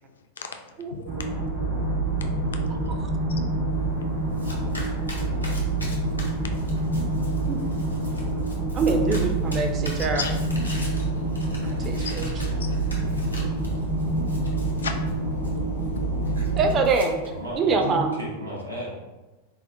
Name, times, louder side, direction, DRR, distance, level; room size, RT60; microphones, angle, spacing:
voice 1, 0.0-9.0 10.0-10.3 10.7-16.6, left 5 dB, 65° left, 5 dB, 0.3 m, -40 dB
sound 1, 1.1-16.7, right 2 dB, 50° right, 1.3 m, -27 dB
Domestic sounds home sounds, 3.7-17.3, left 1 dB, 90° left, 0.7 m, -43 dB
voice 2, 8.7-10.2 11.6-12.2 16.6-17.2 17.6-18.1, right 4 dB, 30° right, 4 dB, 0.4 m, -24 dB
Buzz, 11.1-18.3, right 1 dB, 70° right, 1.1 m, -45 dB
voice 3, 17.3-18.9, equal, 85° right, -4 dB, 0.8 m, -35 dB
4.1 x 2.1 x 2.5 m, 1.1 s
figure-of-eight pair, 90°, 0 cm